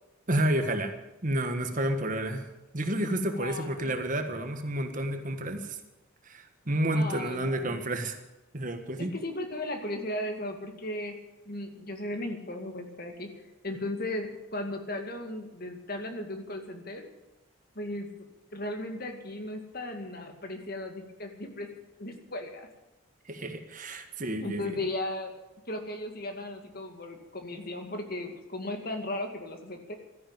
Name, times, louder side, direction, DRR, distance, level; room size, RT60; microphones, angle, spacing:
voice 1, 0.3-0.9 1.2-2.5 2.7-5.8 6.3-8.2 8.5-9.1 23.3-24.8, right 1 dB, 40° right, 6 dB, 1.5 m, -30 dB
voice 2, 3.4-3.9 6.9-7.8 9.0-11.2 11.5-13.3 13.6-17.1 17.8-18.1 18.5-21.7 22.0-22.7 24.4-25.3 25.7-29.9, left 1 dB, 45° left, 5 dB, 2.2 m, -36 dB
13.5 x 11.0 x 9.0 m, 0.99 s
head